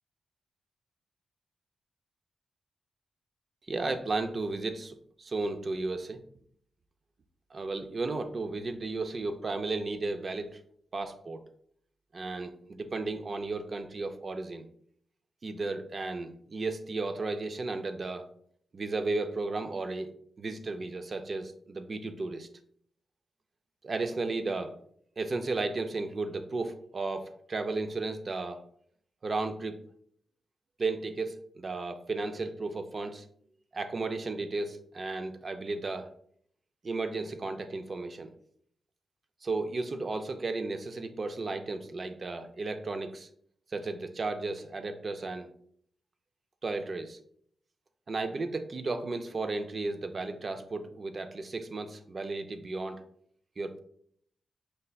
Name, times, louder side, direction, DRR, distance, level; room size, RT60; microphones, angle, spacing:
voice 1, 3.7-6.2 7.5-10.6 10.9-11.4 12.1-14.7 15.4-18.3 18.7-20.1 20.4-22.5 23.8-24.8 25.2-28.6 29.2-29.8 30.8-33.2 33.7-36.1 36.8-38.3 39.4-43.3 43.7-45.5 46.6-47.2 48.1-53.0 53.6-53.8, right 3 dB, 30° right, 8 dB, 0.3 m, -34 dB
5.4 x 3.2 x 2.2 m, 0.64 s
wide cardioid pair, 175°, 0 cm